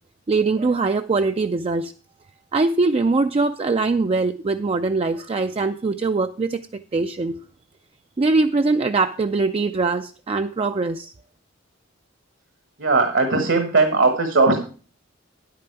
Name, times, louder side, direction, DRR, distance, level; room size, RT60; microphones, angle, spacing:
voice 1, 0.3-1.9 2.5-6.6 6.9-7.4 8.2-11.1, right 3 dB, 30° right, 7 dB, 0.4 m, -22 dB
voice 2, 12.8-14.6, right 3 dB, 65° right, 6 dB, 1.3 m, -18 dB
10.0 x 8.6 x 4.6 m, 0.38 s
head